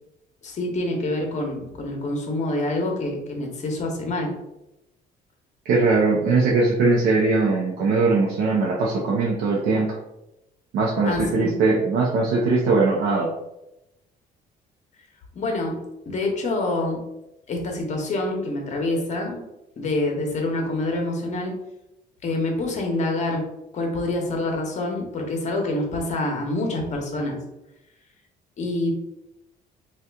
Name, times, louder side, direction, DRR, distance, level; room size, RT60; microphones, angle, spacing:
voice 1, 0.4-4.3 11.0-11.6 15.3-17.0 17.5-19.4 19.8-21.5 22.2-23.5 23.7-27.4 28.6-28.9, left 2 dB, 45° left, 2 dB, 0.9 m, -26 dB
voice 2, 5.6-10.0 10.7-13.3, right 3 dB, 75° right, -4 dB, 0.6 m, -20 dB
2.8 x 2.3 x 3.4 m, 0.88 s
cardioid pair, 110°, 17 cm